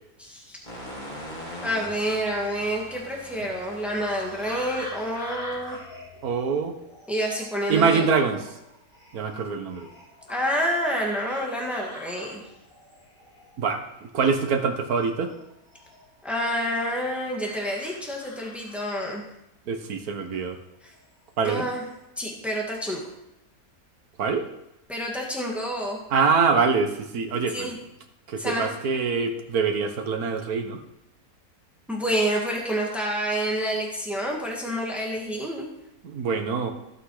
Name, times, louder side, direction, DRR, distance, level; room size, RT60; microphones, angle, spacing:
voice 1, 0.2-0.6 1.6-5.8 7.1-8.0 10.3-12.5 16.2-19.2 20.8-20.9 21.4-21.8 22.2-23.0 24.9-26.0 27.5-27.8 28.4-28.7 31.9-35.7, equal, ahead, -1 dB, 2.1 m, -28 dB
sound 1, 0.6-6.7, equal, 30° left, 3.4 m, -42 dB
sound 2, 4.0-14.0 14.3-16.2 16.8-19.0 20.2-20.5 20.9-21.4 21.7-22.0, left 1 dB, 75° left, 5.7 m, -45 dB
voice 2, 6.2-6.8 7.7-8.4 9.1-9.9 13.6-15.3 19.7-20.6 21.4-21.7 24.2-24.5 26.1-27.8 28.3-30.8 36.0-36.7, right 5 dB, 80° right, 6 dB, 1.7 m, -24 dB
16.5 x 5.9 x 5.0 m, 0.85 s
omnidirectional pair, 1.6 m